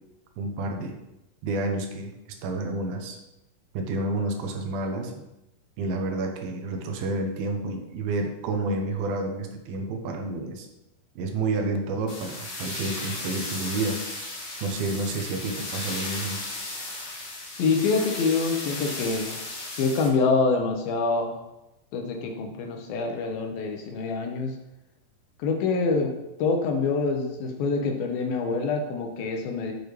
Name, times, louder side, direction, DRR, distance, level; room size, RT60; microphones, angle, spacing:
voice 1, 0.4-1.0 1.4-2.1 2.4-3.2 3.7-5.2 5.8-10.7 11.2-14.0 14.6-16.4, right 2 dB, 80° right, 4 dB, 2.5 m, -29 dB
sound 1, 12.1-20.1, left 2 dB, 60° left, 3.4 m, -35 dB
voice 2, 17.6-19.4 19.8-21.4 21.9-24.5 25.4-26.1 26.4-29.7, left 4 dB, 75° left, 3 dB, 2.4 m, -26 dB
6.9 x 6.6 x 3.1 m, 0.92 s
omnidirectional pair, 4.5 m